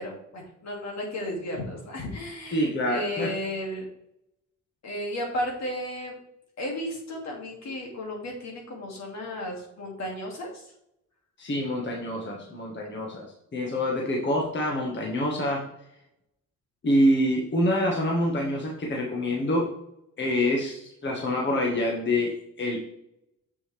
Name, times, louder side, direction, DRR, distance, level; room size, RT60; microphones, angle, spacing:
voice 1, 0.0-3.9 4.8-6.2 6.6-10.6, left 1 dB, 60° left, -1 dB, 2.6 m, -34 dB
voice 2, 2.5-3.3 11.4-15.7 16.8-19.7 20.2-22.8, left 1 dB, 40° left, -1 dB, 1.6 m, -26 dB
7.3 x 6.0 x 3.4 m, 0.79 s
cardioid pair, 90°, 30 cm